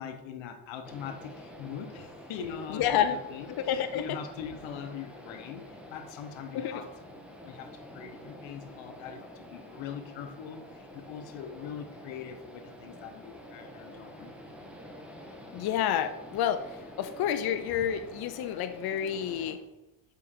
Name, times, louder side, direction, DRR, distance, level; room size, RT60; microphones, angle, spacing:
voice 1, 0.0-6.9 7.3-14.3, left 7 dB, 85° left, 7 dB, 1.0 m, -42 dB
sound 1, 0.8-19.5, equal, 5° right, 1.3 m, -48 dB
voice 2, 2.7-3.2 3.5-4.2 6.5-6.8 15.5-19.6, left 9 dB, 55° left, 10 dB, 0.6 m, -29 dB
7.1 x 5.2 x 4.3 m, 0.97 s
cardioid pair, 85°, 44 cm